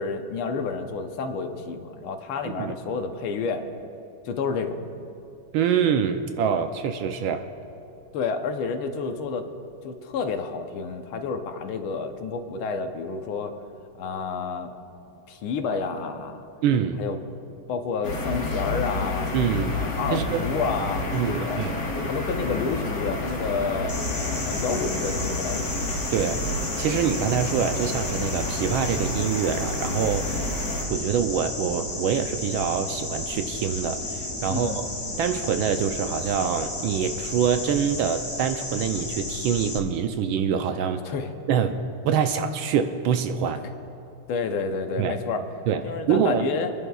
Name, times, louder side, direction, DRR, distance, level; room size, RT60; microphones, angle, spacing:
voice 1, 0.0-3.6 4.2-4.8 8.1-9.5 9.8-13.5 14.0-14.7 15.3-16.5 17.0-17.2 17.7-19.3 19.8-21.6 22.0-24.0 24.5-25.8 34.5-34.8 41.0-41.3 44.3-45.4 45.8-46.7, left 5 dB, 75° left, 6 dB, 1.6 m, -29 dB
voice 2, 2.4-2.7 5.5-7.5 16.6-17.0 19.3-19.8 20.1-20.5 21.1-21.8 26.1-26.4 26.8-30.4 30.9-34.9 35.2-41.1 41.5-43.6 45.0-45.2 45.7-46.4, right 7 dB, 75° right, 7 dB, 1.3 m, -25 dB
sound 1, 18.0-30.8, left 2 dB, 55° left, 2.0 m, -30 dB
sound 2, 23.9-39.8, left 2 dB, 20° left, 0.6 m, -33 dB
30.0 x 11.0 x 2.3 m, 2.7 s
omnidirectional pair, 2.4 m